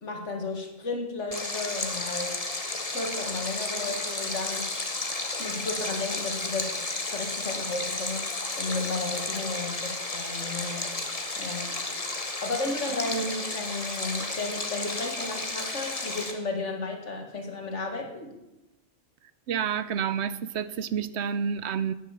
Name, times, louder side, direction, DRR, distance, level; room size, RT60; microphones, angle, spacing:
voice 1, 0.0-2.4 2.9-4.7 5.4-6.8 7.1-10.9 11.4-11.8 12.4-18.3, left 2 dB, 80° left, 2.3 m, -33 dB
Stream, 1.3-16.3, left 2 dB, 30° left, 1.5 m, -33 dB
voice 2, 19.5-21.9, right 7 dB, 70° right, 0.9 m, -29 dB
10.5 x 10.0 x 7.3 m
omnidirectional pair, 1.2 m